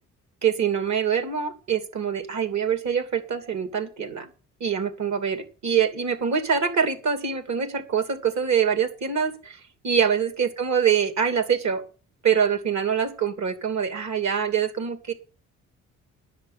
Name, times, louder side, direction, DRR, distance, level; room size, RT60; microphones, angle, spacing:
voice 1, 0.4-4.3 4.6-11.8 12.2-15.1, right 7 dB, 65° right, 11 dB, 3.0 m, -24 dB
10.5 x 7.7 x 8.4 m, 0.34 s
cardioid pair, 90°, 30 cm